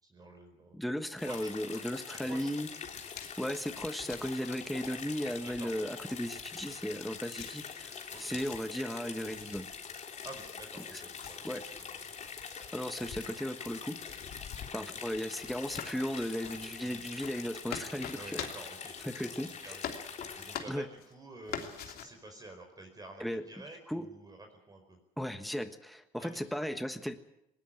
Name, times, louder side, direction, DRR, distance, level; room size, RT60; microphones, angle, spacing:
voice 1, 0.0-0.8 1.2-1.8 2.2-2.5 5.4-5.7 8.1-8.4 10.2-11.5 11.8-11.9 16.8-17.0 18.1-19.8 20.3-25.0 26.2-26.4, right 2 dB, 20° right, 4 dB, 4.9 m, -49 dB
voice 2, 0.7-2.7 3.4-9.7 10.9-11.0 11.4-11.6 12.7-14.2 14.7-18.4 19.0-19.7 20.7-20.9 23.2-23.4 23.9-24.0 25.2-27.2, equal, ahead, 8 dB, 1.4 m, -36 dB
sound 1, 1.2-20.6, left 6 dB, 45° left, 3.5 m, -44 dB
sound 2, 2.8-19.5 19.8-21.1 21.5-22.0, left 8 dB, 65° left, 3.0 m, -46 dB
20.0 x 20.0 x 8.9 m, 0.85 s
cardioid pair, 110°, 17 cm